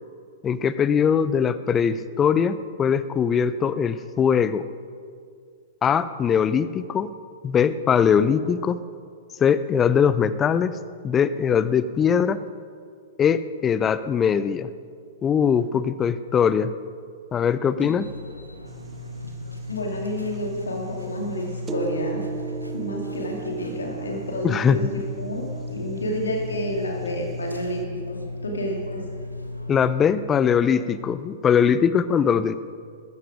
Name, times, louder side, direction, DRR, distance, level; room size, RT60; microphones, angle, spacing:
voice 1, 0.4-4.6 5.8-7.1 7.4-8.8 9.4-10.8 11.0-12.4 13.2-14.7 15.2-16.7 17.3-18.1 24.4-24.8 29.7-32.5, left 7 dB, 20° left, 14 dB, 0.6 m, -21 dB
sound 1, 17.8-29.9, left 2 dB, 90° left, 1.3 m, -36 dB
sound 2, 18.7-27.8, right 7 dB, 20° right, 0.7 m, -38 dB
voice 2, 19.7-22.2 22.7-29.0, left 1 dB, 75° left, 0 dB, 2.3 m, -30 dB
15.5 x 13.5 x 4.9 m, 2.2 s
figure-of-eight pair, 105°, 0 cm